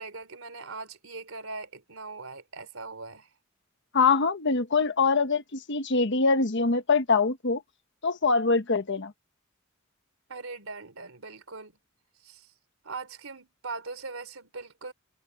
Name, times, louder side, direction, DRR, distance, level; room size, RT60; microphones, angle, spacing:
voice 1, 0.0-3.3 10.3-11.7 12.2-12.5 12.8-14.9, right 3 dB, 90° right, 3.4 m, -40 dB
voice 2, 3.9-7.6 8.0-9.1, left 4 dB, 60° left, 1.2 m, -24 dB
head